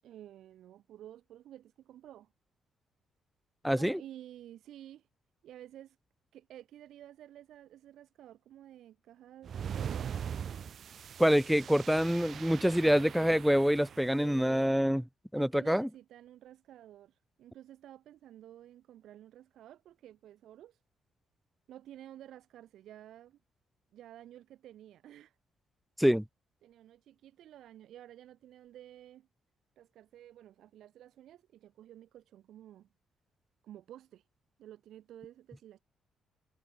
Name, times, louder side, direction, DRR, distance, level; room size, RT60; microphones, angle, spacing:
voice 1, 0.0-2.3 3.7-5.1 5.4-6.0 6.3-10.1 12.8-13.5 14.2-14.7 15.3-20.8 21.7-23.4 23.9-25.4 26.6-29.3 29.8-32.9 33.6-34.3 34.6-35.8, right 12 dB, 75° right, 7.2 m, -52 dB
voice 2, 3.6-4.0 11.2-15.0 15.3-15.9 26.0-26.2, equal, ahead, 0.8 m, -26 dB
sound 1, 9.4-14.3, right 8 dB, 55° right, 1.6 m, -41 dB
cardioid pair, 90°, 0 cm